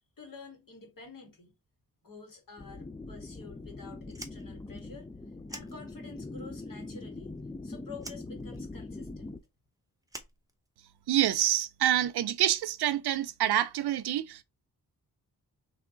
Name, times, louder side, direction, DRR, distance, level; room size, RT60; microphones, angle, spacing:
voice 1, 0.2-1.6 2.0-5.1 5.5-7.3 7.6-9.4, left 4 dB, 60° left, 2.1 m, -49 dB
sound 1, 2.6-9.4, left 2 dB, 10° left, 0.3 m, -42 dB
Fire, 4.0-6.3 6.6-7.6 8.0-11.1, right 1 dB, 10° right, 0.9 m, -48 dB
voice 2, 11.1-14.4, right 12 dB, 85° right, 0.6 m, -27 dB
3.5 x 3.0 x 3.8 m
cardioid pair, 70°, 37 cm